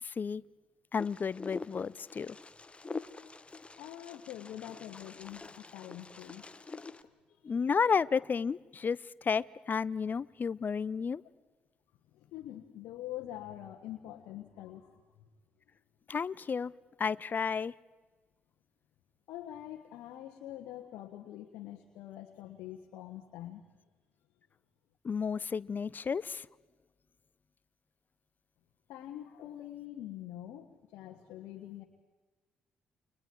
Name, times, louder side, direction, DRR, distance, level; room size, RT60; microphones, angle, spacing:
voice 1, 0.0-0.4 0.9-2.4 7.4-11.2 16.1-16.7 17.0-17.7 25.0-26.5, left 6 dB, 45° left, 22 dB, 0.7 m, -32 dB
Wind, 1.0-7.0, left 3 dB, 25° left, 1.4 m, -45 dB
voice 2, 3.8-7.6 12.1-15.3 19.3-23.6 28.9-31.8, left 12 dB, 75° left, 4 dB, 1.5 m, -45 dB
29.5 x 25.0 x 4.7 m, 1.2 s
hypercardioid pair, 45°, 5 cm